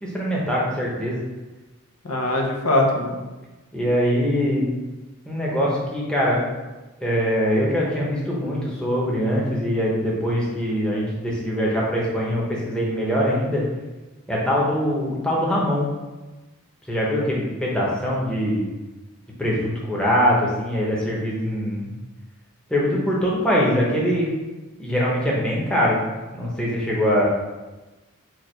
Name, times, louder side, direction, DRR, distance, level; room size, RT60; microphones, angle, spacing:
voice 1, 0.0-1.2 3.7-4.6 5.3-6.5 7.0-13.6 14.3-15.9 16.9-18.7 19.4-21.9 22.7-24.3 24.8-26.0 26.3-27.3, equal, 5° left, -5 dB, 0.8 m, -22 dB
voice 2, 2.0-3.2, left 1 dB, 85° left, 1 dB, 0.8 m, -21 dB
4.7 x 2.5 x 4.4 m, 1.1 s
head